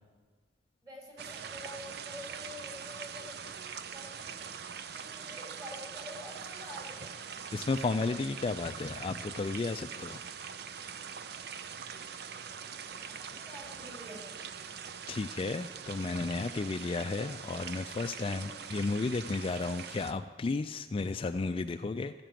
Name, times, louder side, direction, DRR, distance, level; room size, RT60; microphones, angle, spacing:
voice 1, 0.8-4.4 4.9-7.1 11.3-14.3 18.2-18.5, equal, 20° right, -2 dB, 3.7 m, -48 dB
sound 1, 1.2-20.1, right 7 dB, 65° right, 0.6 m, -43 dB
voice 2, 7.5-10.2 15.1-22.1, left 3 dB, 30° left, 9 dB, 0.3 m, -33 dB
14.5 x 5.9 x 9.0 m, 1.4 s
head